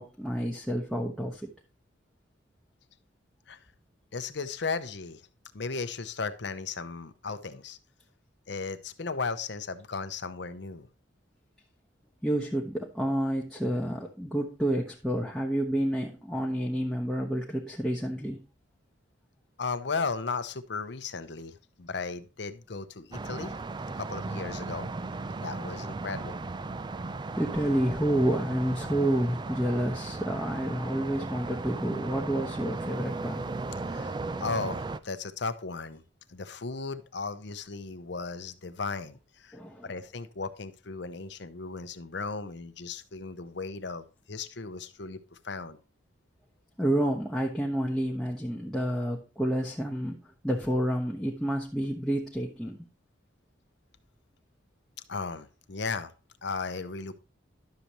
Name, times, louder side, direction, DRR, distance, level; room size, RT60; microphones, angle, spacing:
voice 1, 0.0-1.4 12.2-18.4 27.4-33.4 39.5-39.9 46.8-52.8, right 1 dB, ahead, -3 dB, 0.9 m, -29 dB
voice 2, 4.1-5.2 5.5-7.8 8.5-10.9 19.6-23.5 24.0-24.9 25.4-26.4 33.8-36.0 36.3-45.8 55.1-56.1 56.4-57.1, left 4 dB, 60° left, 11 dB, 0.7 m, -36 dB
sound 1, 23.1-35.0, right 3 dB, 25° right, 0.3 m, -36 dB
11.5 x 6.8 x 3.0 m, 0.33 s
head